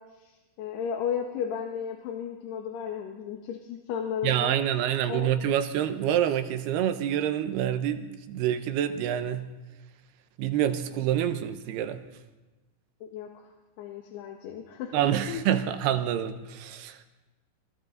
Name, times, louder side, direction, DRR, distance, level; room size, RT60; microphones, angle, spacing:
voice 1, 0.2-4.6 5.1-5.4 13.0-13.3 13.8-15.5, left 8 dB, 70° left, 3.4 m, -34 dB
voice 2, 4.2-9.5 10.4-12.0 14.9-17.0, right 10 dB, 75° right, 2.7 m, -27 dB
27.5 x 24.5 x 4.0 m
omnidirectional pair, 5.2 m